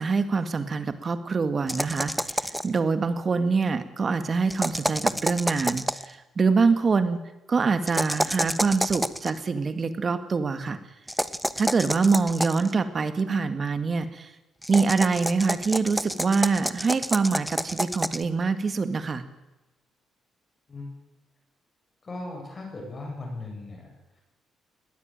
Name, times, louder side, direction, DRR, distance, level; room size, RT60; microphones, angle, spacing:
voice 1, 0.0-7.2 7.5-10.8 11.6-14.3 14.7-19.2, right 4 dB, 40° right, 10 dB, 2.1 m, -25 dB
sound 1, 1.7-2.8 4.5-6.1 7.9-9.3 11.1-12.7 14.6-18.2, equal, ahead, 1.1 m, -29 dB
voice 2, 22.0-24.2, left 2 dB, 35° left, 2 dB, 7.8 m, -38 dB
20.0 x 18.5 x 9.0 m, 1.0 s
cardioid pair, 90°, 0 cm